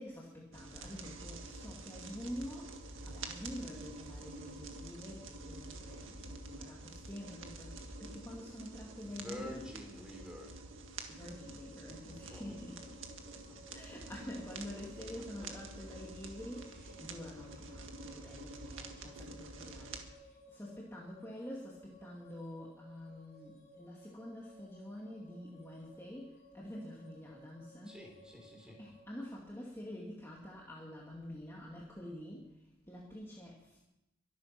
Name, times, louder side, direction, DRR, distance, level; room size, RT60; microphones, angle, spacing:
voice 1, 0.0-9.8 11.1-13.0 13.3-13.4 13.7-28.0 28.8-33.8, left 1 dB, 10° left, -4 dB, 2.4 m, -47 dB
sound 1, 0.5-20.0, right 2 dB, 70° right, 1.8 m, -48 dB
voice 2, 9.0-10.6 12.3-12.5 27.8-28.8, left 1 dB, 5° right, 1 dB, 3.7 m, -48 dB
sound 2, 11.2-29.0, left 1 dB, 35° left, 5.2 m, -60 dB
23.5 x 9.4 x 6.1 m, 0.91 s
head